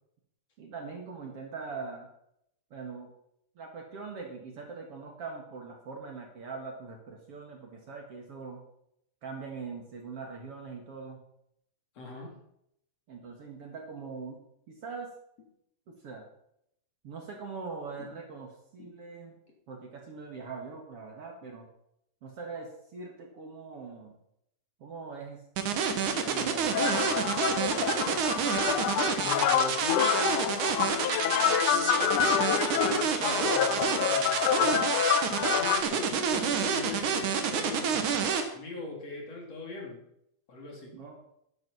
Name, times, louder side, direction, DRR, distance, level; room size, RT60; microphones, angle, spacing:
voice 1, 0.6-2.1 2.7-3.1 3.6-8.6 9.2-11.2 13.1-14.4 14.7-15.1 15.9-16.2 17.0-19.4 19.7-21.7 22.2-24.2 24.8-28.3 40.9-41.2, right 4 dB, 50° right, 2 dB, 2.6 m, -42 dB
voice 2, 12.0-12.3 18.0-18.1 18.8-18.9 25.9-26.2 29.2-34.9 35.5-38.1 38.5-40.0 40.5-41.0, left 3 dB, 50° left, -1 dB, 4.3 m, -40 dB
sound 1, 25.6-38.4, right 7 dB, 70° right, 2.9 m, -28 dB
sound 2, 26.7-35.8, left 9 dB, 75° left, 2.3 m, -27 dB
12.0 x 11.5 x 5.7 m, 0.76 s
omnidirectional pair, 3.8 m